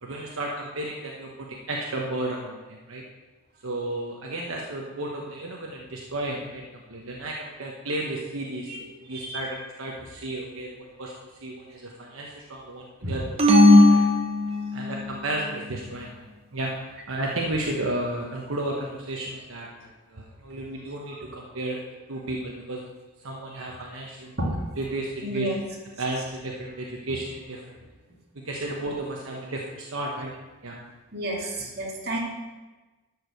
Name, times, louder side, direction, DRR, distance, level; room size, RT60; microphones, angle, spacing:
voice 1, 0.0-3.0 3.6-6.6 6.9-8.7 9.1-14.0 14.7-16.1 16.5-16.7 17.1-21.8 22.1-22.8 23.2-24.3 24.8-25.5 26.0-27.8 28.4-30.3 30.6-30.8 31.4-31.5, right 1 dB, 75° right, -1 dB, 1.1 m, -33 dB
voice 2, 8.7-9.4 13.0-13.2 23.5-23.7 24.4-24.5 25.2-25.6 31.1-32.2, right 1 dB, 50° right, -3 dB, 2.3 m, -32 dB
sound 1, 13.4-15.1, left 1 dB, 30° right, 1.0 m, -17 dB
12.0 x 4.8 x 6.5 m, 1.2 s
head